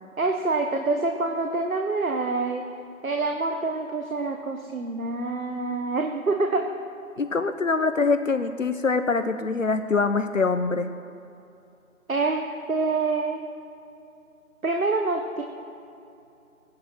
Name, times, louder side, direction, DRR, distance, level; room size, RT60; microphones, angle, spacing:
voice 1, 0.2-2.7 3.0-6.7 12.1-13.4 14.6-15.4, right 3 dB, 75° right, 3 dB, 1.6 m, -26 dB
voice 2, 7.2-10.9, left 4 dB, 65° left, 9 dB, 1.0 m, -24 dB
18.0 x 11.0 x 6.0 m, 2.7 s
figure-of-eight pair, 170°, 42 cm